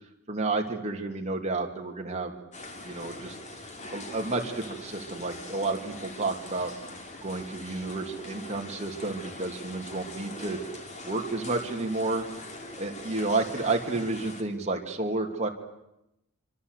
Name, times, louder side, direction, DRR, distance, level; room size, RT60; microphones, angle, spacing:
voice 1, 0.3-2.3 2.8-3.3 3.9-6.7 7.2-10.6 11.0-12.2 12.8-15.5, right 3 dB, 30° right, 2 dB, 3.0 m, -31 dB
sound 1, 2.5-14.4, left 2 dB, 35° left, 3.1 m, -42 dB
25.0 x 25.0 x 8.4 m, 0.86 s
head